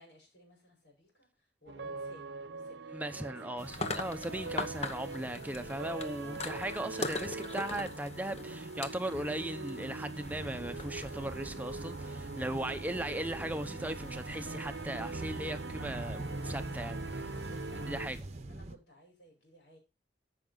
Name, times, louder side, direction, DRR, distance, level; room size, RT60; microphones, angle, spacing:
voice 1, 0.0-3.0 3.2-3.4 12.6-12.8 16.2-16.4 17.4-19.8, equal, 80° left, 5.1 m, -58 dB
sound 1, 1.7-18.1, right 3 dB, 80° right, 0.9 m, -42 dB
voice 2, 2.9-17.4 17.9-18.2, right 1 dB, 10° right, 0.9 m, -38 dB
sound 2, 3.6-18.2, left 3 dB, 40° left, 1.1 m, -44 dB
sound 3, 10.2-18.8, right 2 dB, 40° right, 0.9 m, -45 dB
14.5 x 6.1 x 3.9 m
head